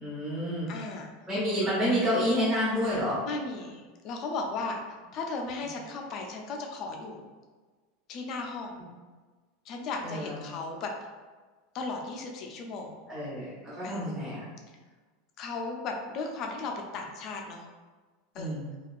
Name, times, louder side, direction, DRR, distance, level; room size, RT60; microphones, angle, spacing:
voice 1, 0.0-0.7 1.3-3.2 10.0-10.5 13.1-14.4 18.3-18.7, equal, 15° right, -12 dB, 1.3 m, -29 dB
voice 2, 0.7-1.1 3.2-4.8 5.1-7.3 8.1-8.8 9.7-10.9 11.7-13.0 13.8-14.0 15.4-17.7 18.3-18.6, left 3 dB, 35° left, 2 dB, 0.4 m, -36 dB
3.5 x 2.4 x 2.3 m, 1.4 s
supercardioid pair, 170°, 0 cm